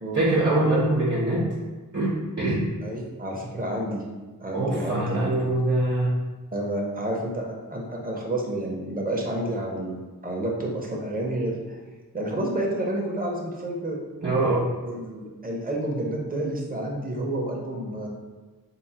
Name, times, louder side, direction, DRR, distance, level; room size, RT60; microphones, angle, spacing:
voice 1, 0.1-1.5 1.9-2.6 4.5-6.1 14.2-14.7, right 2 dB, 40° right, -7 dB, 1.0 m, -23 dB
voice 2, 2.8-4.0 4.4-5.5 6.5-10.0 10.2-11.8 12.1-14.0 14.8-18.1, right 1 dB, 25° right, -1 dB, 0.7 m, -29 dB
3.8 x 2.0 x 4.2 m, 1.2 s
wide cardioid pair, 70°, 37 cm